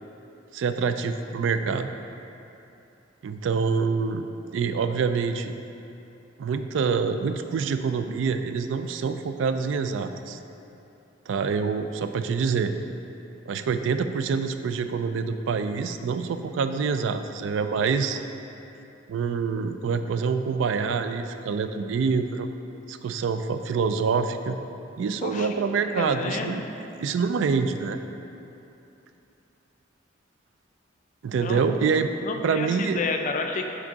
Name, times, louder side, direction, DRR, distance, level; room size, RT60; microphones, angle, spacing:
voice 1, 0.5-1.9 3.2-4.3 4.5-5.5 6.4-10.4 11.3-12.7 13.5-18.2 19.1-22.5 22.9-24.6 25.0-26.6 27.0-28.0 31.2-32.1 32.4-33.0, right 5 dB, 80° right, 9 dB, 0.3 m, -26 dB
voice 2, 25.9-26.5 31.3-33.7, left 4 dB, 40° left, 4 dB, 0.4 m, -31 dB
6.0 x 4.6 x 4.0 m, 2.8 s
head